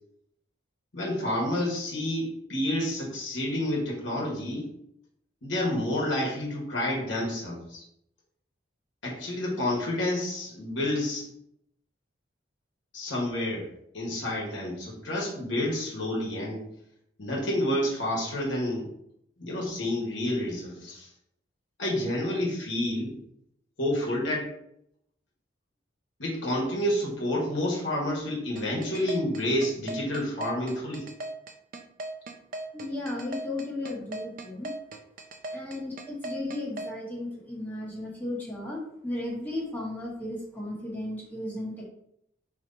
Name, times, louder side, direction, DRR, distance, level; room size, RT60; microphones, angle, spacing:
voice 1, 0.9-4.7 5.4-7.8 9.0-11.3 12.9-13.7 13.9-16.7 17.2-18.9 19.4-21.1 21.8-23.2 23.8-24.5 26.2-31.1, left 1 dB, 80° left, -2 dB, 1.2 m, -29 dB
sound 1, 28.6-36.9, right 2 dB, 45° right, 0.5 m, -37 dB
voice 2, 32.7-34.7 35.5-41.8, left 1 dB, 10° left, -4 dB, 0.9 m, -35 dB
3.8 x 3.0 x 4.1 m, 0.73 s
head